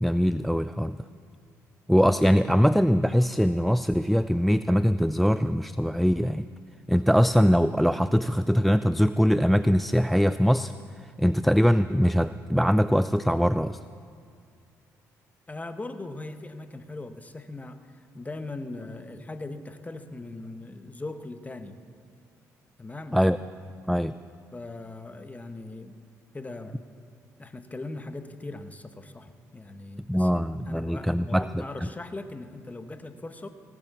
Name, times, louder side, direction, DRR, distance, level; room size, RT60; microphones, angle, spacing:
voice 1, 0.0-1.0 1.9-6.4 6.9-10.7 11.2-13.8 23.1-23.4 23.9-24.1 30.1-31.6, equal, ahead, 14 dB, 0.3 m, -22 dB
voice 2, 15.5-21.8 22.8-23.2 24.5-26.0 26.3-26.8 27.4-33.5, left 2 dB, 20° left, 9 dB, 1.2 m, -40 dB
17.5 x 8.6 x 7.1 m, 2.3 s
supercardioid pair, 60°, 7 cm